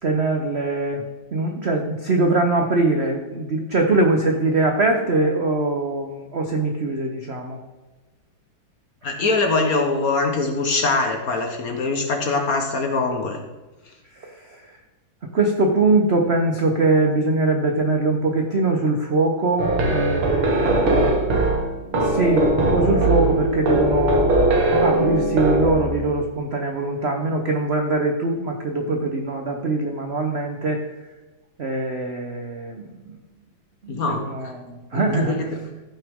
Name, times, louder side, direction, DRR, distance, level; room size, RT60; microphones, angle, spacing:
voice 1, 0.0-1.0 1.3-7.6 14.1-14.6 15.3-21.5 21.8-24.3 24.8-30.8 31.6-33.2 33.8-35.4, right 2 dB, 60° right, 3 dB, 0.6 m, -22 dB
voice 2, 9.0-13.4 33.9-34.5 34.9-35.6, left 3 dB, 50° left, 3 dB, 1.4 m, -23 dB
sound 1, 19.6-26.2, right 2 dB, 80° right, 2.5 m, -20 dB
14.5 x 6.0 x 3.6 m, 1.2 s
omnidirectional pair, 2.3 m